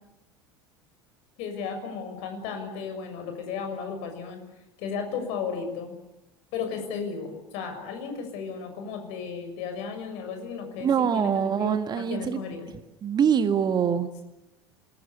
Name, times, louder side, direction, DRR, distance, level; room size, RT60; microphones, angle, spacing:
voice 1, 1.4-4.4 4.8-6.0 6.5-11.3 11.6-12.7, left 6 dB, 55° left, 5 dB, 6.7 m, -34 dB
voice 2, 10.8-12.4 13.0-14.1, right 7 dB, 30° right, 10 dB, 1.8 m, -24 dB
27.5 x 20.5 x 8.5 m, 0.93 s
figure-of-eight pair, 70°, 14 cm